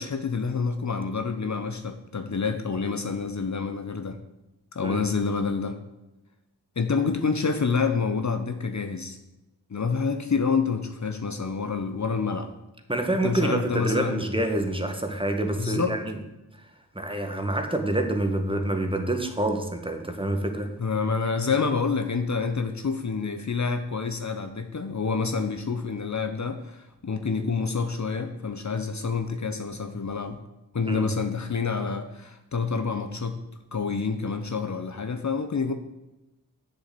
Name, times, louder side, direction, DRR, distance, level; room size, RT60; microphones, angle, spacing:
voice 1, 0.0-4.2 4.7-5.8 6.8-9.2 9.7-12.5 13.2-14.2 15.6-16.0 20.8-30.4 30.7-33.4 33.7-35.7, left 5 dB, 45° left, 7 dB, 1.1 m, -28 dB
voice 2, 12.9-16.2 16.9-20.7 30.9-31.1, right 1 dB, 10° right, 5 dB, 1.8 m, -27 dB
7.8 x 7.2 x 7.9 m, 0.99 s
cardioid pair, 55°, 41 cm